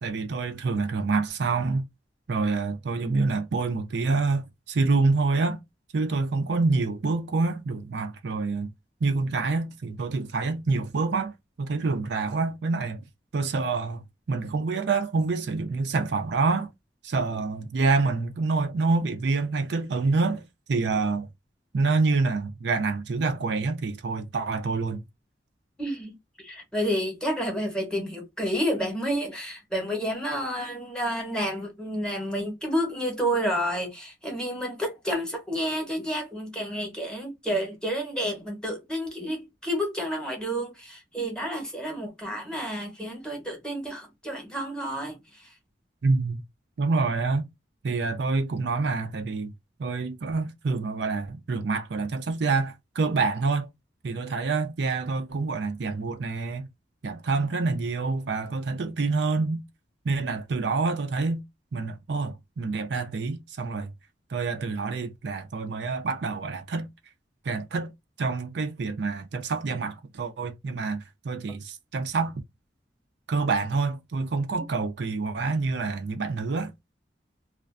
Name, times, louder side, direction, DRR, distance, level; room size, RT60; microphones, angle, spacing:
voice 1, 0.0-1.9 2.3-5.6 5.9-8.7 9.0-11.3 11.6-13.0 13.3-16.7 17.0-21.3 21.7-25.0 46.0-46.4 46.8-47.5 47.8-49.5 49.8-53.7 54.0-56.7 57.0-59.6 60.0-61.4 61.7-63.9 64.3-66.9 67.4-67.9 68.2-72.3 73.3-76.7, right 3 dB, 70° right, 0.5 m, -27 dB
voice 2, 25.8-26.1 26.4-45.2, equal, 5° left, 0.9 m, -30 dB
2.4 x 2.2 x 2.4 m
head